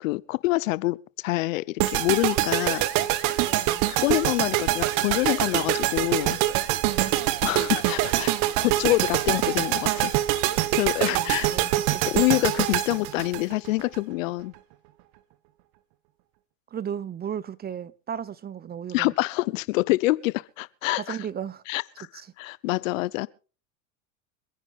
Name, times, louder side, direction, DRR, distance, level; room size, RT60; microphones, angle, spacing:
voice 1, 0.0-2.8 3.9-6.4 7.4-8.3 8.6-10.1 10.7-11.5 12.1-14.5 18.9-21.2 21.7-22.1 22.4-23.3, left 20 dB, 70° left, 0.8 m, -26 dB
sound 1, 1.8-14.0, right 15 dB, 55° right, 1.3 m, -25 dB
voice 2, 3.4-3.9 7.0-7.3 11.1-12.0 16.7-19.1 21.0-21.6 22.1-22.3, right 8 dB, 25° right, 0.8 m, -35 dB
26.0 x 9.9 x 3.6 m
hypercardioid pair, 100°, 40 cm